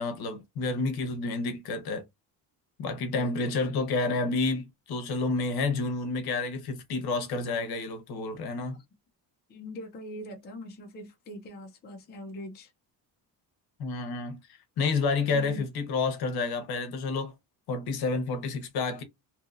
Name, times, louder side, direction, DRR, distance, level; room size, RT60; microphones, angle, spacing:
voice 1, 0.0-2.0 2.8-8.8 13.8-14.4 14.8-17.3 17.7-19.0, left 3 dB, 60° left, 0.9 m, -29 dB
voice 2, 3.1-3.6 9.5-12.7 15.3-15.6, left 1 dB, 25° left, 0.5 m, -42 dB
2.8 x 2.6 x 2.4 m
cardioid pair, 180°, 43 cm